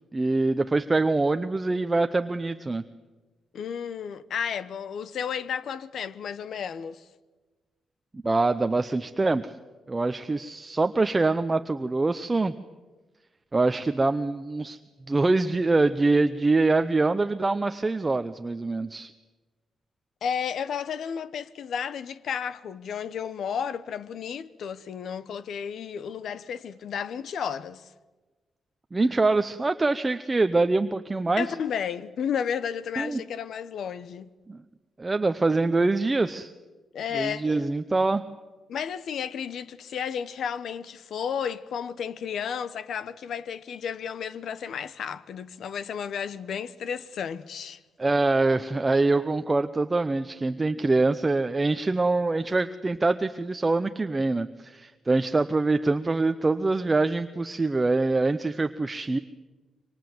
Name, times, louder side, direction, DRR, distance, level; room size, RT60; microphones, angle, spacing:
voice 1, 0.1-2.8 8.2-9.5 9.9-12.5 13.5-14.8 15.1-19.1 28.9-31.5 33.0-33.2 34.5-34.6 35.0-36.5 37.1-38.2 48.0-59.2, right 3 dB, 20° right, 0.7 m, -24 dB
voice 2, 3.5-7.0 20.2-27.9 31.4-34.3 36.9-37.6 38.7-47.8, left 7 dB, 70° left, 1.0 m, -32 dB
26.0 x 24.5 x 7.8 m
cardioid pair, 120°, 0 cm